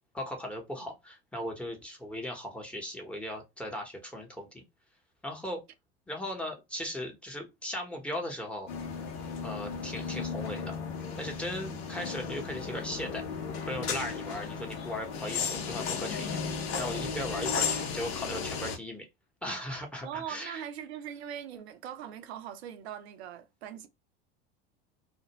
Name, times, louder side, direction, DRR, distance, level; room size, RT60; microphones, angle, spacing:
voice 1, 0.1-4.6 5.2-5.6 6.1-8.7 9.4-10.8 11.2-13.2 13.6-19.1 19.4-20.6, left 1 dB, 5° left, 1.0 m, -38 dB
sound 1, 8.7-18.8, left 6 dB, 65° left, 0.9 m, -35 dB
voice 2, 20.0-23.9, right 9 dB, 85° right, 0.6 m, -41 dB
2.4 x 2.1 x 2.9 m
hypercardioid pair, 90°, 31 cm